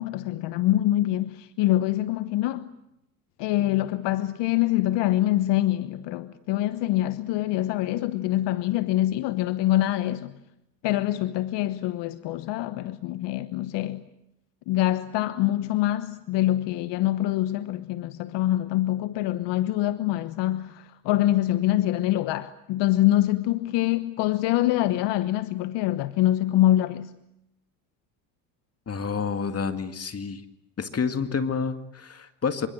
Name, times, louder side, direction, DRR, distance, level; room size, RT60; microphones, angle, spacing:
voice 1, 0.0-2.7 3.4-10.3 10.8-14.0 14.7-27.1, left 14 dB, 65° left, 1.2 m, -25 dB
voice 2, 28.9-30.4 30.8-32.7, left 5 dB, 30° left, 2.2 m, -29 dB
27.5 x 25.5 x 7.8 m
hypercardioid pair, 75°, 46 cm